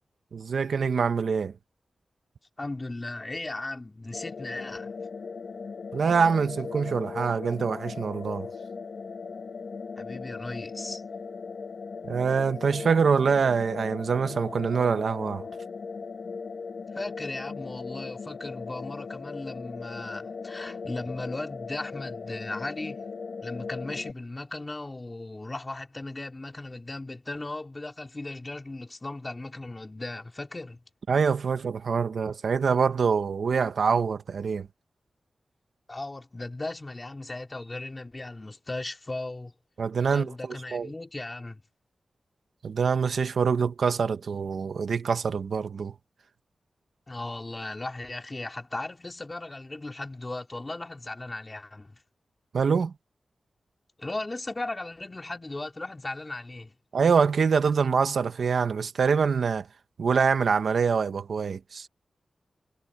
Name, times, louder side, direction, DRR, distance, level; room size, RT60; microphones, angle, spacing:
voice 1, 0.3-1.5 5.9-8.5 12.1-15.5 31.1-34.7 39.8-40.3 40.7-40.9 42.6-45.9 52.5-52.9 56.9-59.7 60.0-61.9, right 5 dB, 75° right, 1.4 m, -25 dB
voice 2, 2.6-4.9 10.0-11.0 16.9-23.0 23.4-30.8 35.9-39.5 40.1-41.6 47.1-52.0 54.0-56.7, left 2 dB, 25° left, 4.0 m, -37 dB
sound 1, 4.1-24.1, left 5 dB, 70° left, 2.3 m, -38 dB
wide cardioid pair, 110°, 0 cm